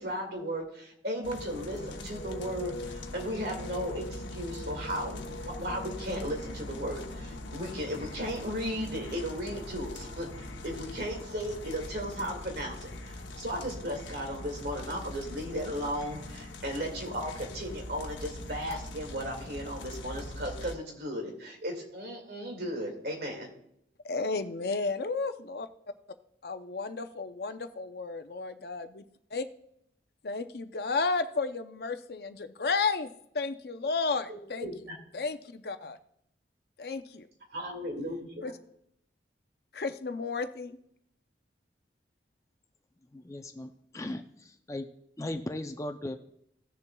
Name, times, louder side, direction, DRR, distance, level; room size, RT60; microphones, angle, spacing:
voice 1, 0.0-23.5 34.3-35.0 37.5-38.5, equal, 65° right, 2 dB, 2.1 m, -36 dB
sound 1, 1.2-20.7, left 1 dB, 90° left, 0.9 m, -41 dB
voice 2, 24.0-25.7 26.4-29.0 29.3-29.4 30.2-33.1 33.3-34.7 35.1-36.0 36.8-37.3 38.4-38.5 39.7-40.8, left 4 dB, 60° left, 9 dB, 0.6 m, -32 dB
voice 3, 43.1-44.9 45.2-46.2, left 1 dB, 15° left, 6 dB, 0.4 m, -37 dB
17.0 x 6.9 x 2.3 m, 0.74 s
head